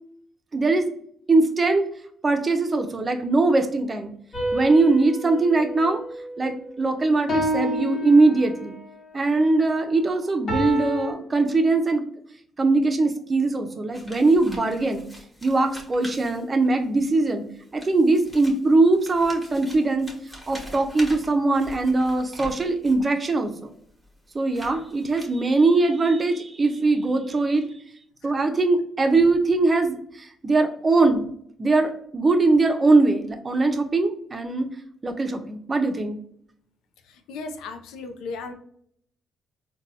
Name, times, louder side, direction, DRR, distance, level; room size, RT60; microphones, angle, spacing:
voice 1, 0.5-0.9 1.3-1.8 2.2-4.1 4.5-6.0 6.4-8.8 9.1-12.0 12.6-15.0 15.4-17.4 17.7-20.1 20.5-23.7 24.3-27.6 28.2-31.3 31.6-34.7 35.0-36.2, right 3 dB, 30° right, 6 dB, 0.5 m, -21 dB
sound 1, 4.3-6.7 7.3-8.8 10.5-11.1, equal, 55° left, 1.1 m, -29 dB
sound 2, 13.9-16.9 17.6-23.1 23.7-25.7, equal, 5° left, 1.0 m, -43 dB
voice 2, 37.1-38.5, left 4 dB, 90° left, 6 dB, 0.4 m, -36 dB
3.9 x 2.2 x 2.7 m, 0.67 s
cardioid pair, 90°, 0 cm